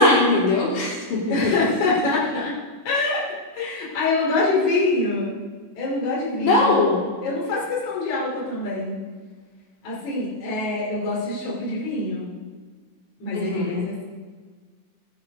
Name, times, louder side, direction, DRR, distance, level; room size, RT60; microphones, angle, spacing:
voice 1, 0.0-1.5 6.4-7.1 13.3-13.9, left 2 dB, 80° left, -4 dB, 4.5 m, -20 dB
voice 2, 1.3-2.5 2.9-3.2 3.5-5.3 5.8-6.7 7.2-9.0 9.8-12.3 13.2-14.0, left 3 dB, 65° left, -6 dB, 4.0 m, -25 dB
16.0 x 9.9 x 5.3 m, 1.5 s
omnidirectional pair, 3.7 m